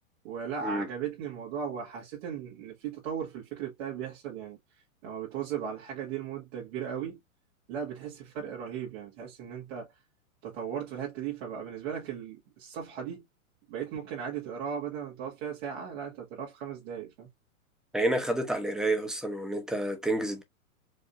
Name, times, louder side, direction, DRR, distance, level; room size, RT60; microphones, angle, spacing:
voice 1, 0.2-4.6 5.0-7.2 7.7-9.9 10.4-13.3 13.7-17.3, right 8 dB, 50° right, 1.8 m, -37 dB
voice 2, 17.9-20.4, right 1 dB, ahead, 0.8 m, -29 dB
5.0 x 2.7 x 2.5 m
hypercardioid pair, 130°, 42 cm